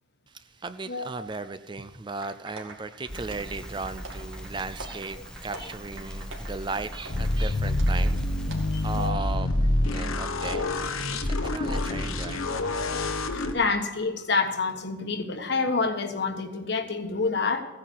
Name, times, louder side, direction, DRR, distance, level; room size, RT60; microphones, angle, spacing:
voice 1, 0.3-12.5, right 3 dB, 20° right, 0.4 m, -37 dB
voice 2, 0.9-1.3 8.7-9.2 13.3-17.6, left 4 dB, 55° left, 1.3 m, -28 dB
sound 1, 2.2-8.1 8.5-8.6, right 3 dB, 75° right, 2.3 m, -45 dB
Crackle, 3.1-9.1, equal, 5° left, 0.7 m, -40 dB
sound 2, 7.1-13.5, left 1 dB, 85° left, 1.2 m, -27 dB
15.5 x 9.7 x 4.6 m
head